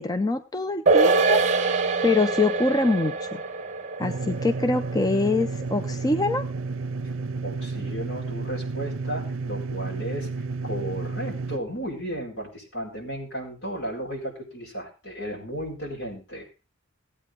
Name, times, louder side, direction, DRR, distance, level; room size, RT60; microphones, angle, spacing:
voice 1, 0.0-1.4 2.0-3.4 4.0-6.4, left 3 dB, 20° left, 8 dB, 0.5 m, -24 dB
sound 1, 0.9-7.5 7.8-7.9, right 3 dB, 35° right, 0.9 m, -25 dB
sound 2, 4.0-11.6, right 4 dB, 80° right, 0.5 m, -32 dB
voice 2, 7.4-10.3 10.6-16.5, equal, 70° left, -1 dB, 4.6 m, -34 dB
16.5 x 8.6 x 3.7 m, 0.30 s
head